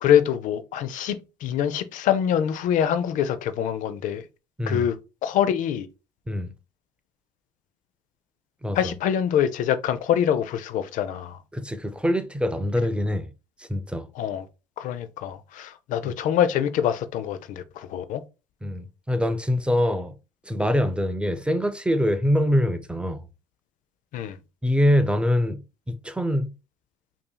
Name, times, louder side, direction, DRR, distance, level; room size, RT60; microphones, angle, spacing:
voice 1, 0.0-4.2 4.7-5.0 5.2-5.9 8.7-11.4 14.1-14.5 14.8-18.2 24.1-24.4, left 9 dB, 60° left, 0.5 m, -25 dB
voice 2, 8.6-8.9 11.5-13.3 13.6-14.1 16.0-16.1 18.6-20.1 20.5-23.2 24.6-25.6 25.9-26.5, equal, 5° right, 0.4 m, -24 dB
5.3 x 2.7 x 2.2 m
supercardioid pair, 90°, 15 cm